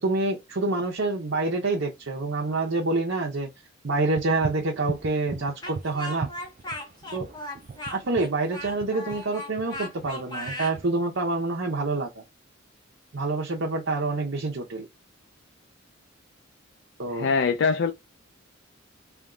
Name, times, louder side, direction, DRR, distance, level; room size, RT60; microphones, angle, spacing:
voice 1, 0.0-3.5 3.8-6.3 7.1-7.3 7.9-12.2 13.1-14.9 17.0-17.3, right 2 dB, 65° right, 0.7 m, -27 dB
sound 1, 4.1-10.8, right 4 dB, 40° right, 0.3 m, -38 dB
Speech, 5.6-10.8, left 1 dB, 20° left, 0.8 m, -37 dB
voice 2, 17.1-17.9, left 5 dB, 60° left, 0.4 m, -23 dB
3.4 x 2.3 x 3.7 m
head